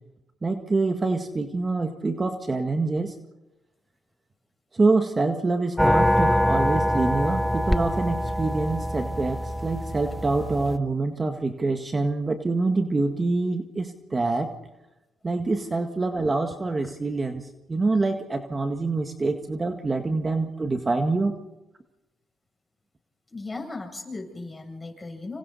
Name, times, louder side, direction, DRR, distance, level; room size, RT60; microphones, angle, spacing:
voice 1, 0.4-3.1 4.7-14.5 15.2-21.4, right 3 dB, 30° right, 5 dB, 1.8 m, -26 dB
sound 1, 5.8-10.8, equal, 5° left, 1.1 m, -24 dB
voice 2, 23.3-25.4, left 3 dB, 20° left, 2 dB, 7.8 m, -37 dB
29.0 x 27.0 x 4.2 m, 0.98 s
cardioid pair, 80°, 0 cm